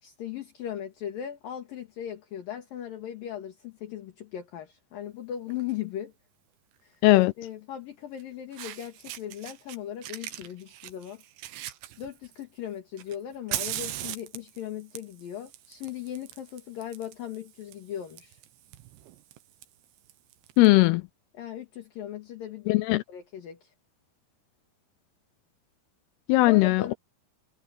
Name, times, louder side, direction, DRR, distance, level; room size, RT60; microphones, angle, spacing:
voice 1, 0.0-6.1 6.8-7.0 7.4-11.2 12.0-18.4 21.3-22.8 23.1-23.7 26.5-26.9, left 10 dB, 60° left, 3.6 m, -38 dB
Fire, 5.5-5.7 7.2-7.3 8.2-8.3 8.5-9.8 10.0-12.4 13.0-20.7, right 13 dB, 80° right, 3.4 m, -40 dB
voice 2, 7.0-7.3 20.6-21.0 22.7-23.0 26.3-26.9, left 20 dB, 80° left, 2.4 m, -19 dB
omnidirectional pair, 5.0 m